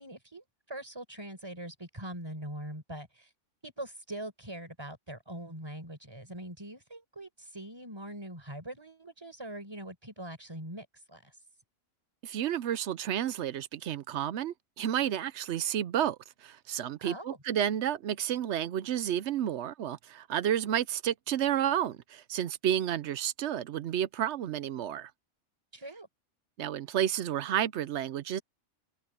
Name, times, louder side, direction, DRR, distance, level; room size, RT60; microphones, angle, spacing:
voice 1, 0.0-3.3 3.6-11.3 17.0-17.4 25.7-26.1, right 1 dB, 20° right, 4.6 m, -42 dB
voice 2, 12.2-25.1 26.6-28.4, right 10 dB, 70° right, 0.9 m, -31 dB
omnidirectional pair, 1.3 m